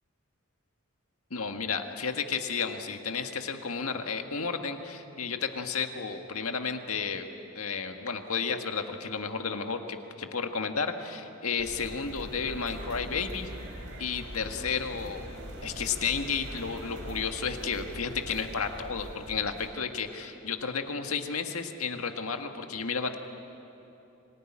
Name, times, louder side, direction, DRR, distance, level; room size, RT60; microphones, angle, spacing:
voice 1, 1.3-7.3 7.6-13.5 14.0-15.3 15.6-23.2, left 5 dB, 85° left, 5 dB, 1.7 m, -32 dB
sound 1, 11.6-19.7, right 1 dB, 60° right, 4.2 m, -42 dB
25.5 x 18.5 x 10.0 m, 3.0 s
head